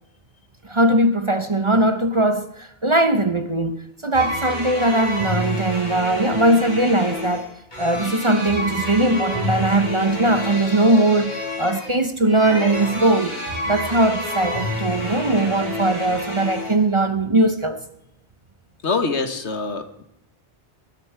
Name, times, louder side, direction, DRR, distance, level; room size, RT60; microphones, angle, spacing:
voice 1, 0.6-7.5 7.8-13.4 13.7-17.8, right 1 dB, 30° right, 0.7 m, -20 dB
sound 1, 4.1-16.7, left 1 dB, 45° left, 5.2 m, -28 dB
voice 2, 18.8-20.0, left 4 dB, 85° left, 1.6 m, -24 dB
19.0 x 11.0 x 4.7 m
omnidirectional pair, 1.1 m